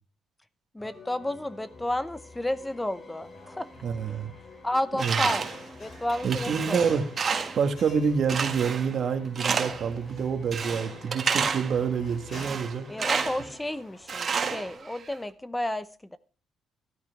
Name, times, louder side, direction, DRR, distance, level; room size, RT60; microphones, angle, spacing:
voice 1, 0.7-3.7 4.6-5.4 5.8-7.0 12.9-16.2, left 1 dB, 10° left, 15 dB, 0.7 m, -31 dB
sound 1, 0.8-13.6, left 3 dB, 35° left, 3.4 m, -48 dB
sound 2, 3.2-14.7, left 2 dB, 65° left, 7.1 m, -51 dB
voice 2, 3.8-4.3 5.0-5.2 6.2-7.0 7.5-12.9, right 6 dB, 60° right, 9 dB, 1.6 m, -27 dB
Tools, 5.0-5.6 6.1-7.7 8.3-9.0 9.3-9.9 10.5-11.8 12.3-13.5 14.1-15.1, right 6 dB, 45° right, 1.7 m, -30 dB
13.0 x 13.0 x 3.5 m, 0.37 s
cardioid pair, 90°, 0 cm